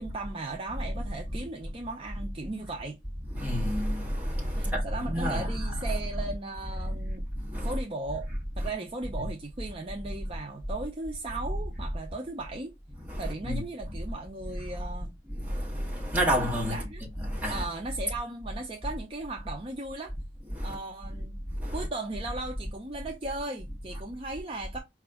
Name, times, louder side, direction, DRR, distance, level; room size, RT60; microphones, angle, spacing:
voice 1, 0.0-3.0 4.5-7.3 7.6-8.3 8.6-12.7 13.2-15.1 16.7-17.0 17.5-20.1 20.6-21.4 21.7-24.8, right 2 dB, 30° right, 0.5 m, -37 dB
voice 2, 3.3-5.8 7.5-7.8 13.0-13.6 15.3-16.8 17.2-17.6 20.5-20.8 21.6-21.8, equal, 10° right, 1.1 m, -29 dB
5.0 x 2.3 x 3.4 m
head